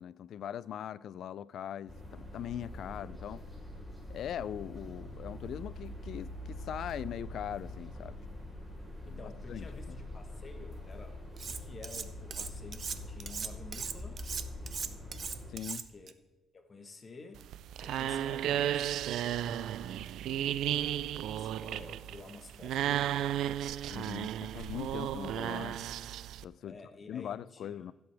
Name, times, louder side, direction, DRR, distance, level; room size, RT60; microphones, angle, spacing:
voice 1, 0.0-3.4 4.1-8.2 9.1-9.2 9.5-10.0 15.5-15.9 23.9-25.8 26.4-26.8 27.1-27.9, left 10 dB, 70° left, 0.4 m, -41 dB
sound 1, 1.9-15.5, left 1 dB, 10° right, 4.2 m, -44 dB
voice 2, 9.0-11.2 11.4-14.2 15.9-16.1 16.5-17.5 17.8-19.1 19.8-20.5 21.0-23.8 25.1-25.4 26.6-27.7, left 3 dB, 35° left, 1.3 m, -51 dB
Cutlery silverware, 11.4-12.0 12.3-16.1, right 6 dB, 45° right, 0.7 m, -39 dB
sound 2, 17.3-26.4, right 11 dB, 80° right, 0.3 m, -34 dB
16.0 x 7.9 x 3.5 m
cardioid pair, 90°, 0 cm